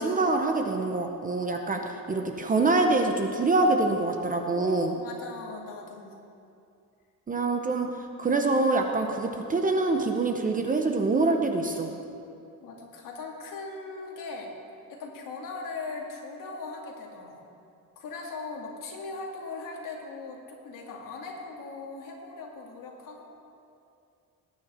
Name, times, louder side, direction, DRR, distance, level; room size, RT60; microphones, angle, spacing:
voice 1, 0.0-1.8 2.1-4.9 7.3-11.9, right 3 dB, 20° right, 4 dB, 0.7 m, -25 dB
voice 2, 4.5-6.2 7.4-7.5 12.6-14.5 14.9-17.4 18.0-23.2, left 3 dB, 60° left, 0 dB, 2.3 m, -39 dB
19.5 x 9.5 x 4.3 m, 2.6 s
cardioid pair, 175°, 37 cm